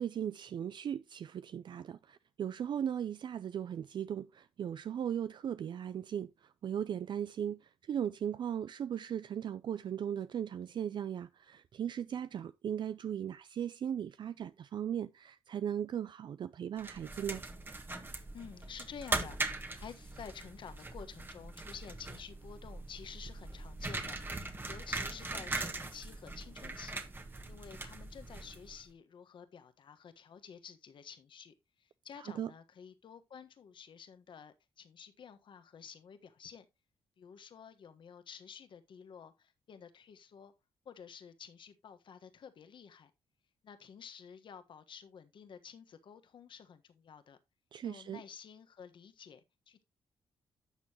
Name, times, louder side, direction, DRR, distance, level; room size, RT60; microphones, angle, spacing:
voice 1, 0.0-6.3 6.6-7.6 7.9-17.4 32.2-32.5 47.7-48.2, right 9 dB, 55° right, 0.4 m, -37 dB
sound 1, 16.8-28.8, right 2 dB, 20° right, 1.4 m, -41 dB
voice 2, 18.3-27.0 27.5-36.7 37.2-40.5 40.8-43.1 43.6-47.4 47.8-49.8, left 7 dB, 60° left, 1.3 m, -51 dB
11.5 x 6.9 x 2.9 m
cardioid pair, 95°, 10 cm